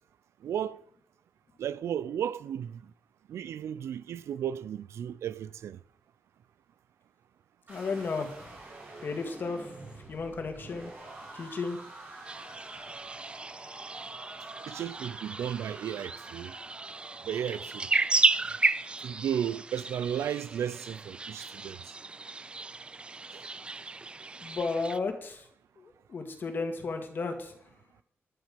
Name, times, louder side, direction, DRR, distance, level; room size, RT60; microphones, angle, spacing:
voice 1, 0.4-0.8 1.6-2.9 3.3-5.8 14.7-16.5 17.2-17.9 19.0-21.9 23.3-23.4, right 9 dB, 85° right, 0.5 m, -34 dB
voice 2, 7.7-8.3 9.0-9.7 10.1-10.9 11.3-11.8 24.4-25.4 25.8-27.5, left 4 dB, 50° left, 2.0 m, -33 dB
sound 1, 7.7-19.7, right 2 dB, 45° right, 6.2 m, -48 dB
sound 2, 12.3-25.0, right 3 dB, 25° right, 0.4 m, -33 dB
13.5 x 11.5 x 5.2 m
wide cardioid pair, 115°, 5 cm